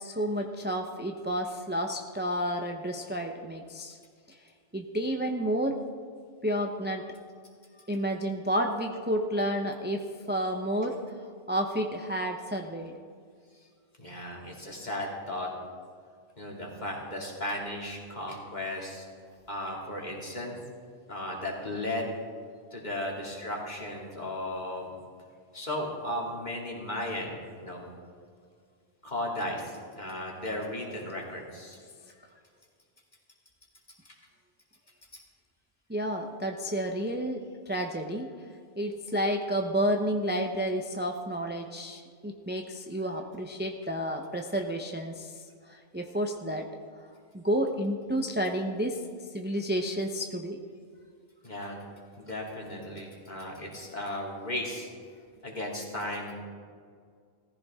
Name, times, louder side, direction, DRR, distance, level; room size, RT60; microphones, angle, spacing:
voice 1, 0.0-4.0 4.7-5.8 6.4-7.0 7.9-11.1 11.5-12.9 35.9-38.3 38.8-45.3 45.7-46.7 47.3-49.0 49.3-50.6, equal, 10° right, 3 dB, 0.7 m, -30 dB
voice 2, 14.0-15.5 16.4-19.1 19.5-20.6 21.1-22.1 22.7-24.9 25.5-27.9 29.0-31.8 34.0-34.1 51.4-51.8 52.2-54.9 55.4-56.3, left 1 dB, 40° left, -2 dB, 2.8 m, -35 dB
18.0 x 15.0 x 3.6 m, 2.1 s
omnidirectional pair, 1.1 m